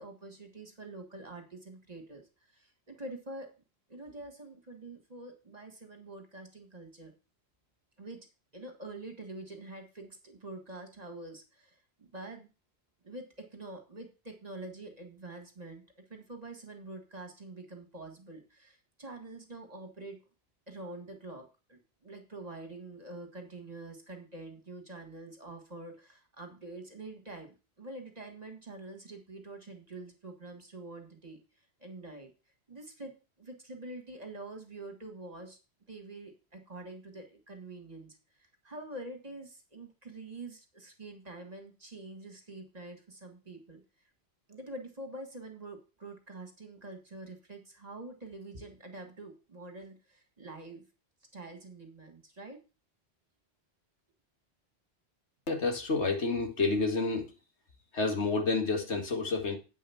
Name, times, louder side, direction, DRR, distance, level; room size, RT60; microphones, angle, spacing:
voice 1, 0.0-2.2 2.5-3.5 3.9-7.1 8.0-8.3 8.5-12.5 13.0-15.8 16.1-20.2 20.7-31.4 31.8-32.3 32.7-35.6 35.9-43.8 44.5-50.8 51.3-52.6, right 2 dB, 35° right, 4 dB, 2.2 m, -46 dB
voice 2, 55.5-57.3 57.9-59.6, left 3 dB, 85° left, 3 dB, 2.4 m, -29 dB
8.8 x 5.6 x 7.2 m, 0.31 s
omnidirectional pair, 1.1 m